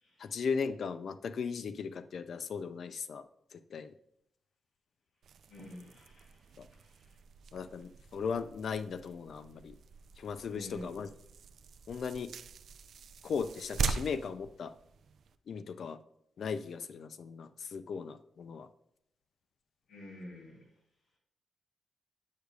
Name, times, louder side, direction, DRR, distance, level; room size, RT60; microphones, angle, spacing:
voice 1, 0.2-3.2 3.5-3.9 6.6-6.7 7.5-9.8 10.2-11.1 11.9-12.3 13.2-14.7 15.5-16.0 16.4-18.7, left 5 dB, 55° left, 12 dB, 0.4 m, -37 dB
sound 1, 5.2-15.4, right 5 dB, 60° right, 0.3 m, -42 dB
voice 2, 5.5-6.4 6.7-7.2 10.5-10.9 19.9-20.6, left 1 dB, 75° left, -5 dB, 2.8 m, -48 dB
8.0 x 6.5 x 2.4 m, 0.76 s
wide cardioid pair, 165°, 0 cm